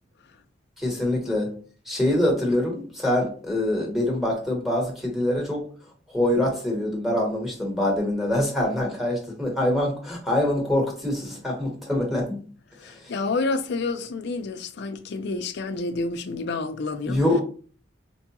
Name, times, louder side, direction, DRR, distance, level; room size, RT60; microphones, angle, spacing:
voice 1, 0.8-1.5 1.9-5.6 6.1-12.4 17.0-17.4, left 1 dB, ahead, 1.1 m, -24 dB
voice 2, 12.7-17.2, left 3 dB, 60° left, 0.4 m, -29 dB
4.6 x 2.3 x 2.9 m
head